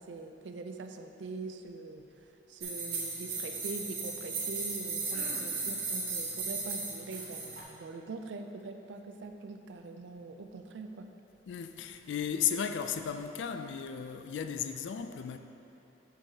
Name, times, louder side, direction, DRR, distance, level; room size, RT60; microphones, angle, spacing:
voice 1, 0.0-2.1 2.5-11.1, right 3 dB, 85° right, 0.4 m, -43 dB
sound 1, 2.6-7.6, right 3 dB, 50° right, 1.1 m, -36 dB
voice 2, 11.5-15.4, left 8 dB, 85° left, 0.3 m, -34 dB
6.3 x 6.3 x 2.8 m
head